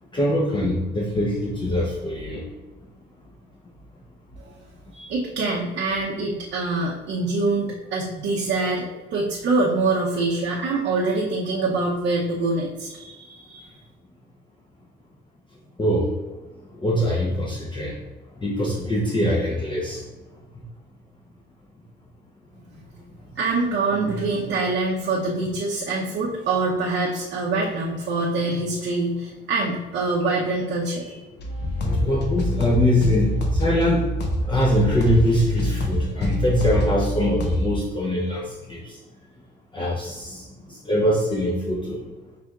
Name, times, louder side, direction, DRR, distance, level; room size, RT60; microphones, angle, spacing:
voice 1, 0.1-2.4 15.8-16.1 16.8-18.0 18.4-20.0 32.0-34.0 34.4-39.0 39.7-40.4 40.8-42.0, equal, 25° left, -4 dB, 0.8 m, -23 dB
voice 2, 4.9-13.8 23.4-31.2, right 3 dB, 70° right, -4 dB, 0.8 m, -25 dB
sound 1, 31.4-37.8, equal, 60° left, 0.9 m, -25 dB
5.8 x 3.4 x 2.4 m, 1.2 s
cardioid pair, 90°, 20 cm